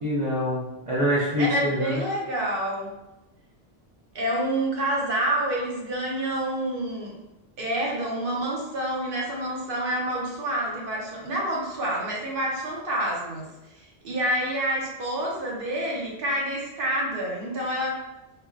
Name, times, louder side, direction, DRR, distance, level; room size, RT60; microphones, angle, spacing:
voice 1, 0.0-2.0, equal, 40° right, -8 dB, 0.6 m, -25 dB
voice 2, 1.4-2.9 4.1-7.1 7.6-13.5 13.7-18.0, right 1 dB, 60° right, -3 dB, 0.9 m, -28 dB
3.4 x 2.1 x 2.5 m, 0.99 s
omnidirectional pair, 1.1 m